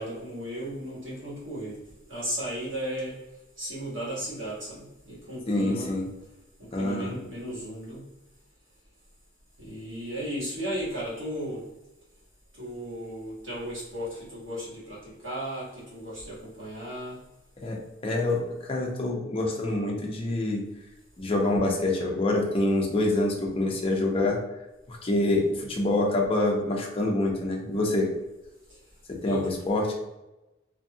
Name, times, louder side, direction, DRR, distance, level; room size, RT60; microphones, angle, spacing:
voice 1, 0.0-1.8 2.1-3.2 3.6-5.9 6.8-8.0 9.6-11.6 12.6-17.2 29.2-29.5, equal, 70° right, -8 dB, 1.4 m, -35 dB
voice 2, 5.5-6.0 6.7-7.2 17.6-17.8 18.0-20.6 21.2-24.4 24.9-28.1 29.2-29.9, left 2 dB, 30° left, -1 dB, 0.5 m, -26 dB
2.6 x 2.2 x 2.7 m, 0.97 s
head